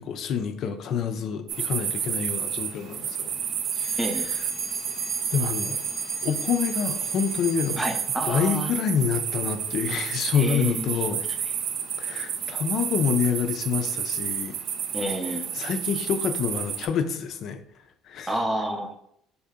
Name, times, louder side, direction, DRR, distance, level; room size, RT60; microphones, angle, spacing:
voice 1, 0.0-3.3 3.8-4.0 4.3-4.4 5.3-5.8 6.2-7.8 8.3-11.2 12.0-14.6 15.3-17.6 18.0-18.3, left 7 dB, 50° left, 7 dB, 0.4 m, -27 dB
sound 1, 1.5-16.9, right 8 dB, 55° right, 0.5 m, -30 dB
Alarm, 3.6-8.3, left 1 dB, 15° left, 0.9 m, -39 dB
voice 2, 4.0-4.3 7.8-8.7 10.3-10.9 14.9-15.5 18.3-18.9, right 1 dB, 10° right, 5 dB, 0.6 m, -29 dB
4.1 x 2.7 x 3.5 m, 0.71 s
cardioid pair, 130°, 0 cm